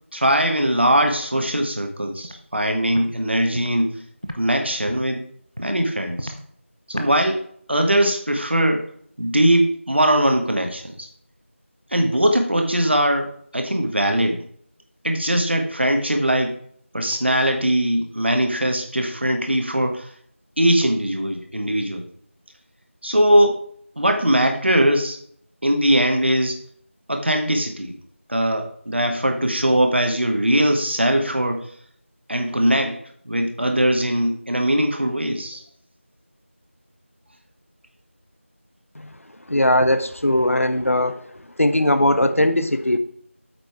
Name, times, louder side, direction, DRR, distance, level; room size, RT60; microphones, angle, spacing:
voice 1, 0.1-4.0 4.3-5.2 5.6-6.3 6.9-8.9 9.2-11.1 11.9-14.4 15.0-16.6 16.9-20.1 20.6-22.0 23.0-23.6 24.0-25.2 25.6-26.6 27.1-28.0 28.3-31.7 32.3-35.6, right 1 dB, 55° right, 5 dB, 1.4 m, -20 dB
Walk footsteps, 2.2-2.4 2.9-3.1 3.5-3.7 4.2-4.4 4.8-5.1 5.5-5.7 6.1-6.4 6.9-7.1, equal, 30° right, 0.7 m, -33 dB
voice 2, 39.5-41.2 41.6-43.0, left 1 dB, 85° left, 10 dB, 1.0 m, -19 dB
8.8 x 5.2 x 4.8 m, 0.62 s
figure-of-eight pair, 180°, 7 cm